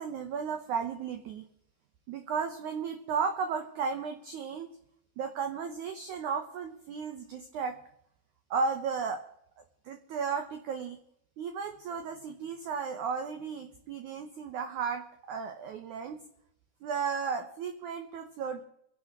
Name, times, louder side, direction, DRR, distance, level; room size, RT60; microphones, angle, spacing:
voice 1, 0.0-1.4 2.1-4.7 5.2-7.8 8.5-9.2 9.8-11.0 11.4-16.2 16.8-18.6, right 6 dB, 75° right, 6 dB, 1.8 m, -34 dB
27.0 x 11.5 x 3.7 m, 0.75 s
omnidirectional pair, 4.7 m